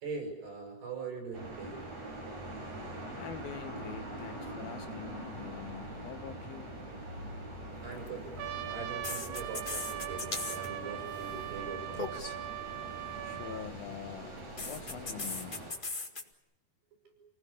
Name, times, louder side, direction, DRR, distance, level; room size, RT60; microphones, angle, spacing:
voice 1, 0.0-2.1 7.8-8.3 8.7-12.3 17.1-17.2, right 4 dB, 70° right, 9.2 m, -42 dB
sound 1, 1.3-15.7, right 1 dB, 40° right, 7.4 m, -43 dB
voice 2, 3.2-6.7 13.2-14.4 14.6-15.6, left 11 dB, 70° left, 2.6 m, -45 dB
sound 2, 7.9-8.1 9.0-10.7 10.9-11.3 11.9-12.4 14.6-16.2, left 3 dB, 55° left, 0.5 m, -38 dB
Trumpet, 8.4-13.7, right 13 dB, 85° right, 3.6 m, -40 dB
29.0 x 18.5 x 8.7 m
omnidirectional pair, 4.7 m